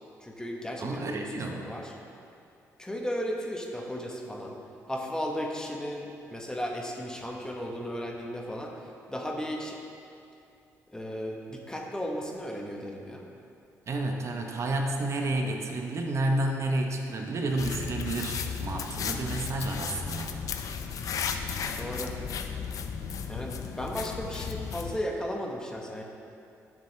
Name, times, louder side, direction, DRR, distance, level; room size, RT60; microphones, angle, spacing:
voice 1, 0.2-1.9 2.8-4.6 4.9-8.7 9.1-9.8 10.9-13.3 21.6-22.2 23.3-26.0, equal, 10° left, 0 dB, 1.0 m, -35 dB
voice 2, 0.8-1.7 13.9-20.3, right 2 dB, 50° right, 2 dB, 0.8 m, -30 dB
sound 1, 17.6-25.0, left 6 dB, 65° left, 0.5 m, -34 dB
9.8 x 6.9 x 3.3 m, 2.6 s
cardioid pair, 75°, 6 cm